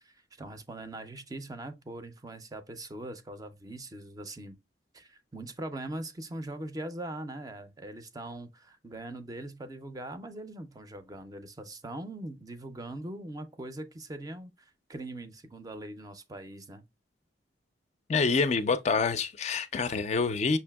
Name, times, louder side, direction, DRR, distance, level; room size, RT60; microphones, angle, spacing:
voice 1, 0.0-4.6 4.9-16.8, right 1 dB, 20° right, 0.4 m, -41 dB
voice 2, 18.1-20.6, left 4 dB, 40° left, 0.4 m, -27 dB
5.7 x 2.6 x 2.2 m
head